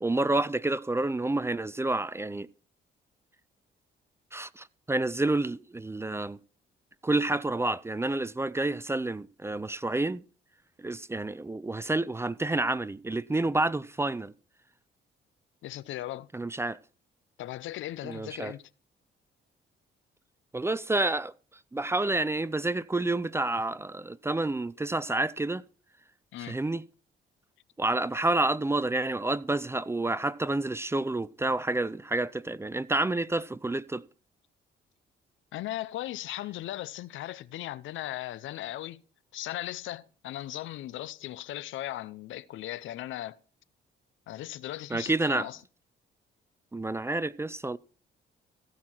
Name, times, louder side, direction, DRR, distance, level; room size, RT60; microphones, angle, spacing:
voice 1, 0.0-2.5 4.3-6.4 7.0-10.2 10.8-14.3 16.3-16.8 18.0-18.5 20.5-21.3 21.7-25.6 26.5-26.8 27.8-34.0 44.9-45.5 46.7-47.8, right 2 dB, 15° right, 0.4 m, -29 dB
voice 2, 15.6-16.3 17.4-18.6 26.3-26.6 35.5-39.0 39.3-43.4 44.3-45.6, left 14 dB, 80° left, 0.6 m, -37 dB
15.5 x 5.7 x 4.5 m
cardioid pair, 90°, 20 cm